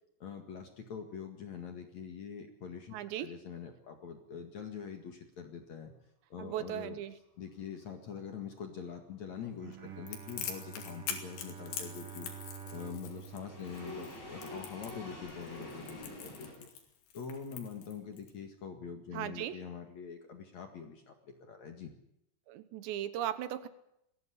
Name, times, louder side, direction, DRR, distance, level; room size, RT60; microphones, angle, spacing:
voice 1, 0.2-5.9 6.3-7.0 7.4-12.3 12.7-16.7 17.1-21.1 21.4-21.9, left 6 dB, 50° left, 5 dB, 2.5 m, -44 dB
voice 2, 2.9-3.3 6.4-7.2 19.1-19.6 22.5-23.7, right 11 dB, 75° right, 13 dB, 3.3 m, -37 dB
sound 1, 9.6-16.5, left 1 dB, 20° left, 8.1 m, -48 dB
Bowed string instrument, 9.6-14.8, right 8 dB, 50° right, 1.8 m, -49 dB
Crackle, 10.1-18.3, left 8 dB, 75° left, 4.9 m, -44 dB
21.0 x 16.0 x 9.9 m, 0.80 s
omnidirectional pair, 5.2 m